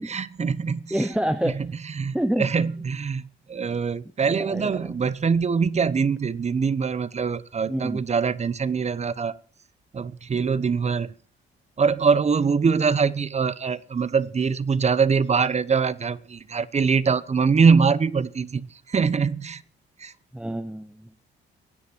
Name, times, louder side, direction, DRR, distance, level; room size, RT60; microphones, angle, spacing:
voice 1, 0.0-1.1 1.4-3.2 3.5-9.4 9.9-11.1 11.8-19.6 20.0-20.1, right 5 dB, 35° right, 1.1 m, -23 dB
voice 2, 0.9-1.7 2.1-2.5 4.3-4.9 7.7-8.0 20.3-21.1, right 1 dB, 5° right, 1.0 m, -27 dB
23.0 x 10.0 x 4.6 m
cardioid pair, 90°, 20 cm